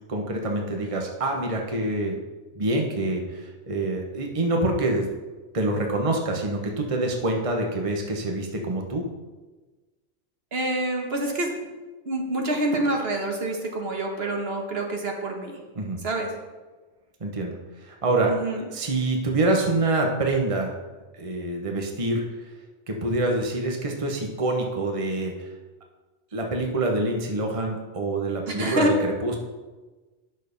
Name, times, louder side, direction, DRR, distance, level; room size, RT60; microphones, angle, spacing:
voice 1, 0.1-2.2 2.5-5.1 5.5-9.1 15.8-16.0 17.2-18.3 18.7-20.7 21.2-22.2 22.9-25.5 26.3-29.4, right 2 dB, 30° right, 1 dB, 1.1 m, -26 dB
voice 2, 10.5-11.5 12.1-15.6 16.0-16.3 18.3-18.6 28.5-28.9, right 1 dB, 60° right, 1 dB, 1.5 m, -27 dB
9.1 x 6.7 x 5.2 m, 1.2 s
omnidirectional pair, 1.2 m